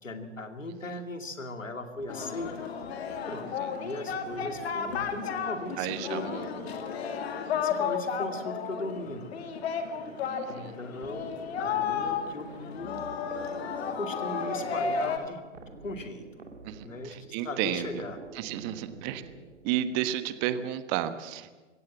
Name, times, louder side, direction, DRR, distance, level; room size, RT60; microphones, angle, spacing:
voice 1, 0.0-2.7 3.3-6.3 7.5-9.3 9.9-10.2 10.5-13.0 14.0-15.4 15.8-16.4 16.8-18.2, left 2 dB, 80° left, 8 dB, 2.4 m, -38 dB
sound 1, 2.0-20.1, right 4 dB, 75° right, 2.5 m, -48 dB
Singing, 2.1-15.2, left 6 dB, 55° left, 2.4 m, -33 dB
voice 2, 5.8-6.5 10.3-10.7 16.6-18.0 18.3-19.2 19.6-21.5, right 11 dB, 35° right, 12 dB, 1.3 m, -32 dB
22.0 x 16.5 x 7.4 m, 1.3 s
figure-of-eight pair, 105°, 38 cm